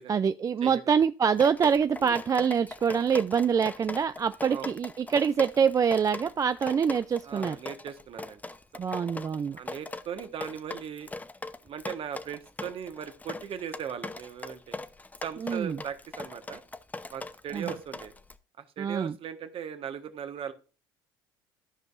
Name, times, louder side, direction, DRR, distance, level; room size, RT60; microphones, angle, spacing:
voice 1, 0.1-7.6 8.8-9.6 15.4-15.8 17.5-17.7 18.8-19.1, right 6 dB, 30° right, 0.3 m, -25 dB
voice 2, 0.6-1.0 2.0-2.2 4.5-4.7 7.2-8.8 9.5-11.1 11.6-14.8 15.2-16.6 17.1-18.1 18.6-20.5, right 8 dB, 50° right, 1.3 m, -39 dB
Drip, 1.3-18.4, left 2 dB, 15° left, 0.7 m, -40 dB
13.5 x 5.2 x 2.5 m
hypercardioid pair, 75°, 12 cm